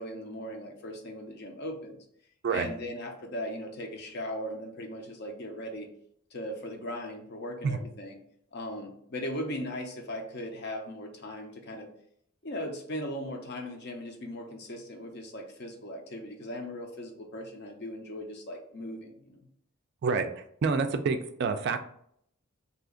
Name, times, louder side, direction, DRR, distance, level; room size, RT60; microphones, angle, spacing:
voice 1, 0.0-2.0 2.5-5.9 6.3-8.2 8.5-11.9 12.4-19.4, left 1 dB, 50° left, 2 dB, 0.6 m, -38 dB
voice 2, 20.0-21.8, right 5 dB, 50° right, 7 dB, 0.3 m, -28 dB
2.8 x 2.4 x 3.7 m, 0.67 s
head